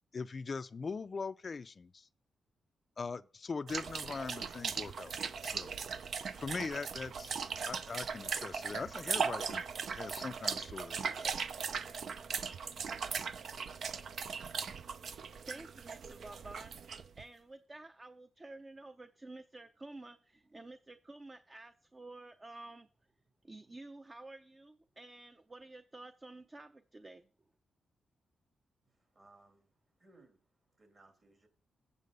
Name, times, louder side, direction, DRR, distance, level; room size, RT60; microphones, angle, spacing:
voice 1, 0.1-2.1 3.0-5.7 6.4-7.3 7.6-9.6 9.9-11.3, left 4 dB, 45° left, 0.4 m, -41 dB
sound 1, 3.7-17.2, right 6 dB, 65° right, 0.6 m, -39 dB
voice 2, 13.8-22.9 23.4-27.3, right 2 dB, 25° right, 0.6 m, -52 dB
voice 3, 28.8-29.7 30.0-30.4 30.8-31.5, right 2 dB, 45° right, 2.8 m, -63 dB
8.3 x 7.3 x 5.3 m
cardioid pair, 80°, 0 cm